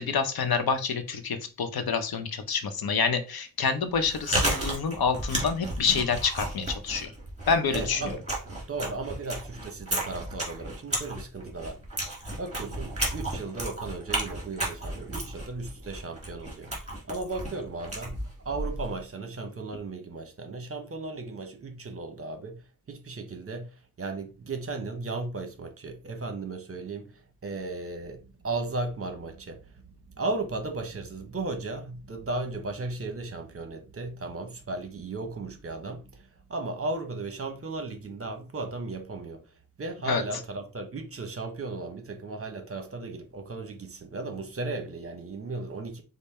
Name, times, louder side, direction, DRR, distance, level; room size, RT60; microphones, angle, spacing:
voice 1, 0.0-7.1 7.5-8.1 40.1-40.2, left 5 dB, 80° left, 0.7 m, -27 dB
Chewing mastication, 3.9-19.0, right 1 dB, 20° right, 1.9 m, -33 dB
voice 2, 7.7-8.2 8.7-11.8 12.4-16.7 17.1-18.2 18.4-22.6 22.9-23.7 24.0-27.1 27.4-29.8 30.1-39.4 39.8-46.0, right 3 dB, 40° right, 0.8 m, -35 dB
5.3 x 2.0 x 4.2 m
wide cardioid pair, 145°, 36 cm